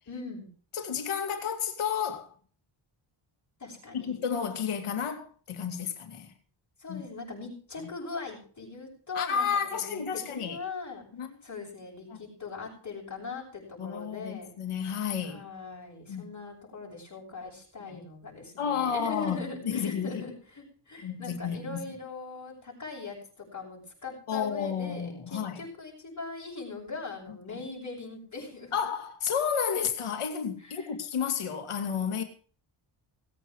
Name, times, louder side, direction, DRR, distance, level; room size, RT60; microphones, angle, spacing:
voice 1, 0.1-0.5 3.6-4.2 6.8-11.0 11.4-14.5 15.2-28.7 30.6-30.9, left 4 dB, 35° left, 6.8 m, -41 dB
voice 2, 0.7-2.3 3.9-6.3 6.9-7.0 7.8-7.9 9.1-10.6 11.1-11.3 12.1-12.2 13.8-15.4 16.1-16.2 17.8-18.0 18.6-20.2 21.0-21.8 24.3-25.6 27.3-27.6 28.7-32.2, left 7 dB, 80° left, 2.6 m, -31 dB
19.0 x 8.3 x 6.2 m
cardioid pair, 100°, 50 cm